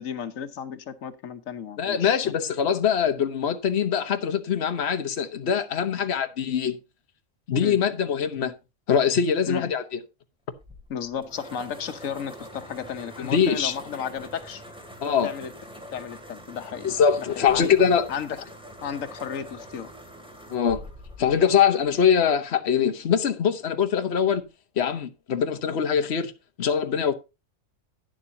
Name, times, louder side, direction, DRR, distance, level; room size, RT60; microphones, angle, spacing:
voice 1, 0.0-2.3 7.6-7.8 9.5-9.7 10.9-14.6 15.0-15.5 15.9-17.7 18.1-18.4 18.8-19.9, left 8 dB, 90° left, 1.3 m, -34 dB
voice 2, 1.8-6.8 7.5-8.5 8.9-10.0 13.2-13.8 15.0-15.3 16.8-18.1 20.5-20.8 21.2-24.4 24.8-26.3 26.6-27.1, left 7 dB, 55° left, 1.3 m, -23 dB
sound 1, 10.5-22.4, equal, 5° right, 2.6 m, -44 dB
11.5 x 10.0 x 2.8 m
omnidirectional pair, 1.3 m